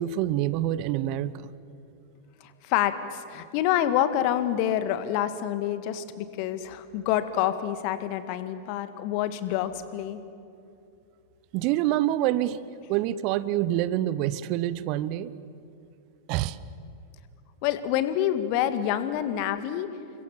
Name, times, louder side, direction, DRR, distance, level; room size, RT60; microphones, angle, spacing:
voice 1, 0.0-1.5 11.5-12.6 12.9-15.3 16.3-16.6, right 13 dB, 45° right, 17 dB, 0.9 m, -26 dB
voice 2, 2.6-10.2 17.6-19.9, left 11 dB, 45° left, 11 dB, 1.9 m, -27 dB
30.0 x 25.0 x 7.5 m, 2.6 s
figure-of-eight pair, 90°, 0 cm